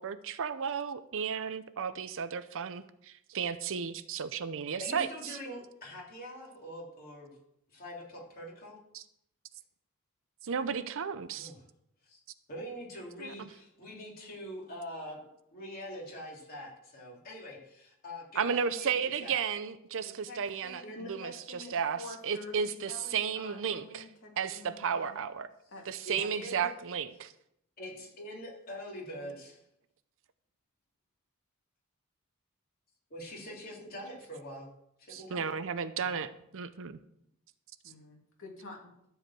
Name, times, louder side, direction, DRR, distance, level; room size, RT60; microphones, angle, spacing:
voice 1, 0.0-5.1 8.9-9.0 10.4-11.5 13.2-13.5 18.4-24.1 24.4-25.5 25.9-27.3 35.1-37.0, right 6 dB, 60° right, 13 dB, 0.6 m, -34 dB
voice 2, 4.8-7.3 7.7-8.8 11.3-11.6 12.0-12.2 12.5-15.2 15.5-19.4 26.1-26.7 27.8-29.6 33.1-34.7 35.0-35.5, equal, 40° left, -3 dB, 3.5 m, -44 dB
voice 3, 20.0-25.2 25.7-25.8 26.2-26.7 35.9-36.2 37.8-38.8, left 2 dB, 60° left, 1 dB, 2.6 m, -48 dB
13.0 x 4.9 x 7.6 m, 0.77 s
head